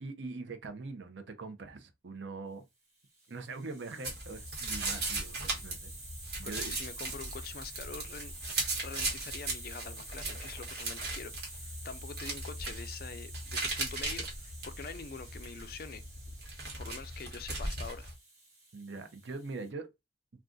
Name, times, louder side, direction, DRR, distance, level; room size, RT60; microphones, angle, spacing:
voice 1, 0.0-2.6 3.3-5.9 6.4-6.8 18.7-19.9, right 3 dB, 70° right, 0.6 m, -42 dB
Hiss, 3.0-19.7, right 2 dB, 15° right, 1.2 m, -49 dB
sound 1, 4.0-18.1, right 2 dB, 55° right, 1.2 m, -38 dB
voice 2, 6.4-11.3 11.6-16.0 16.8-18.1, left 5 dB, 50° left, 0.4 m, -45 dB
2.4 x 2.3 x 3.7 m
head